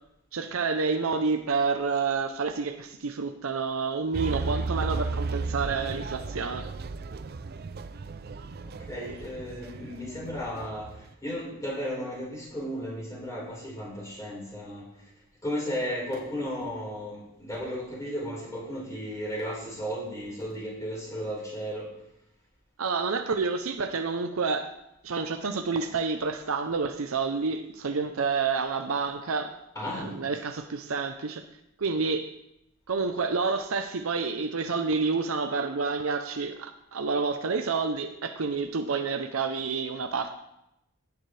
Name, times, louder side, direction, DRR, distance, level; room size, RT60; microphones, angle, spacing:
voice 1, 0.3-6.7 22.8-24.7 25.0-29.5 29.8-31.5 31.8-32.3 32.9-40.3, right 4 dB, 85° right, 7 dB, 0.7 m, -29 dB
sound 1, 4.1-11.1, right 3 dB, 45° right, 0.5 m, -34 dB
voice 2, 8.6-14.9 15.4-21.9 29.7-30.2, equal, 15° left, -6 dB, 4.6 m, -34 dB
16.5 x 7.1 x 3.3 m, 0.84 s
head